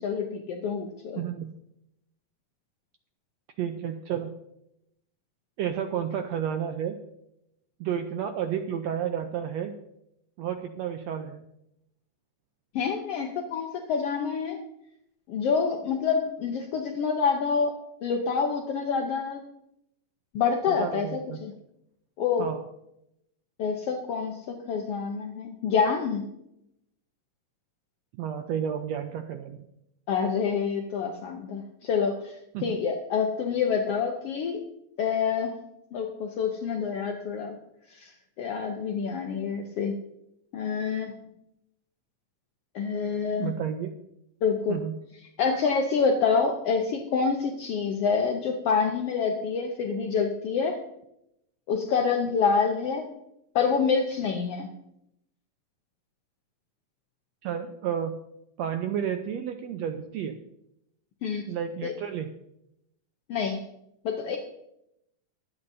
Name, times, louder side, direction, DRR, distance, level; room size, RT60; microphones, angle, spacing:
voice 1, 0.0-1.2 12.7-14.6 15.3-17.7 18.0-19.5 20.3-21.5 22.2-22.5 23.6-26.2 30.1-32.4 32.6-34.6 35.0-35.6 35.9-37.6 37.9-38.1 38.4-39.9 40.5-41.1 42.7-43.5 44.4-44.8 45.4-50.8 51.7-53.1 53.5-54.7 61.2-61.4 61.8-61.9 63.3-63.6 64.0-64.4, left 5 dB, 70° left, 3 dB, 1.4 m, -27 dB
voice 2, 1.2-1.5 3.6-4.3 5.6-7.0 7.8-9.7 10.4-11.4 20.7-21.4 22.4-22.6 28.2-29.6 32.5-32.8 43.4-43.9 44.7-44.9 57.4-58.2 58.6-60.4 61.5-62.3, right 9 dB, 85° right, 6 dB, 1.5 m, -31 dB
24.0 x 8.7 x 2.7 m, 0.80 s
omnidirectional pair, 3.8 m